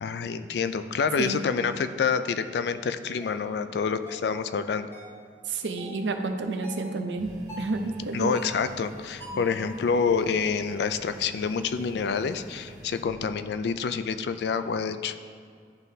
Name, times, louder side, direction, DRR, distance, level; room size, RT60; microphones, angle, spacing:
voice 1, 0.0-4.9 8.1-15.2, left 5 dB, 65° left, 11 dB, 0.3 m, -27 dB
sound 1, 3.2-3.4 4.1-4.3 4.9-5.2 5.8-6.0 6.6-6.9 7.5-7.8 8.3-8.7 9.2-9.6, left 1 dB, 15° left, 1.0 m, -44 dB
voice 2, 5.5-7.3 7.6-8.3 9.3-9.4, right 3 dB, 85° right, 6 dB, 0.6 m, -30 dB
sound 2, 7.2-13.0, right 1 dB, 45° right, 0.8 m, -47 dB
11.0 x 3.8 x 2.7 m, 2.2 s
head